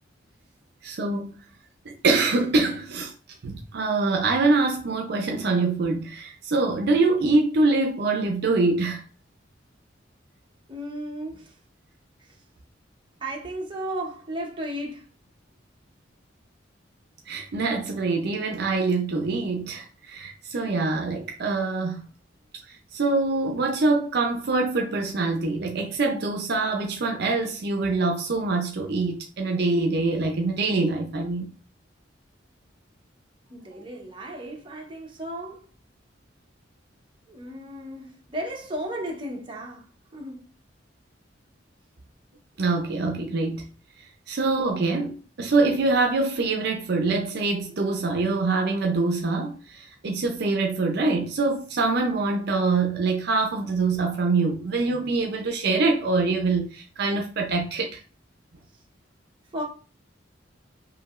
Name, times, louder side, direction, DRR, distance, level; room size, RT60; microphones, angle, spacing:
voice 1, 0.8-1.5 1.9-3.1 3.4-9.0 17.3-22.1 22.7-31.5 42.6-43.7 44.3-58.0, right 3 dB, 60° right, 0.5 m, -24 dB
voice 2, 10.7-11.5 13.2-15.1 20.6-20.7 33.5-35.6 37.3-39.9 40.1-40.4 59.5-59.6, right 1 dB, 25° right, 0.9 m, -34 dB
4.9 x 2.7 x 2.4 m
head